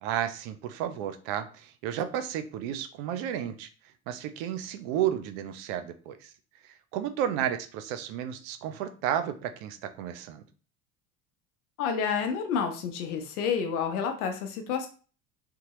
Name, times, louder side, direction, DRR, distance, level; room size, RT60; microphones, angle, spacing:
voice 1, 0.0-3.7 4.1-6.3 6.6-10.4, right 10 dB, 65° right, 11 dB, 0.5 m, -32 dB
voice 2, 11.8-14.9, left 6 dB, 80° left, 5 dB, 0.7 m, -29 dB
2.7 x 2.1 x 2.9 m, 0.38 s
hypercardioid pair, 70°, 45 cm